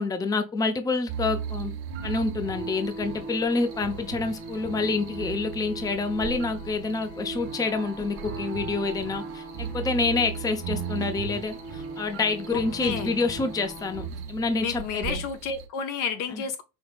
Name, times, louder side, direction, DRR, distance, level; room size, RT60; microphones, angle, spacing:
voice 1, 0.0-1.7 2.0-15.2 16.3-16.4, left 3 dB, 10° left, 0.5 m, -28 dB
sound 1, 1.1-15.7, right 7 dB, 75° right, 1.1 m, -37 dB
sound 2, 2.4-14.1, right 2 dB, 90° left, 2.0 m, -41 dB
voice 2, 12.5-13.2 14.6-16.6, left 6 dB, 55° left, 0.6 m, -31 dB
5.2 x 2.9 x 2.4 m
supercardioid pair, 100°, 39 cm